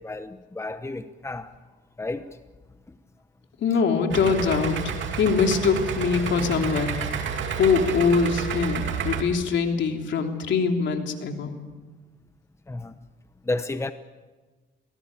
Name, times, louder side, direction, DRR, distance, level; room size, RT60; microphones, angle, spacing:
voice 1, 0.0-1.5 2.0-2.4 12.7-13.0 13.4-13.9, left 2 dB, 15° left, 1.0 m, -31 dB
voice 2, 3.6-7.0 7.6-11.5, left 5 dB, 70° left, 3.2 m, -23 dB
Idling, 4.1-9.2, right 6 dB, 70° right, 2.7 m, -30 dB
23.0 x 18.0 x 8.8 m
cardioid pair, 90°, 20 cm